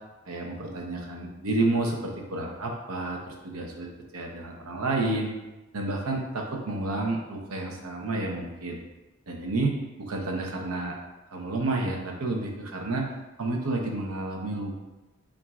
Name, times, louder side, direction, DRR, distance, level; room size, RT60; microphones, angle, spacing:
voice 1, 0.3-5.3 5.7-8.8 9.3-10.9 11.3-13.1 13.4-14.8, right 2 dB, 90° right, 0 dB, 0.8 m, -30 dB
7.2 x 2.5 x 2.3 m, 1.1 s
head